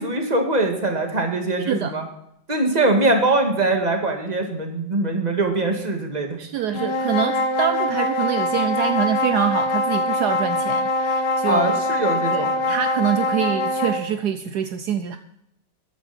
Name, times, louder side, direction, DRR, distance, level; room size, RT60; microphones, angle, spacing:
voice 1, 0.0-2.0 2.5-6.4 6.7-6.8 11.5-12.7, right 2 dB, 25° right, 3 dB, 2.1 m, -22 dB
voice 2, 6.4-11.8 12.3-15.2, right 9 dB, 70° right, 9 dB, 1.2 m, -25 dB
sound 1, 6.7-14.1, left 2 dB, 70° left, 1.6 m, -23 dB
13.5 x 12.0 x 4.3 m, 0.78 s
omnidirectional pair, 1.9 m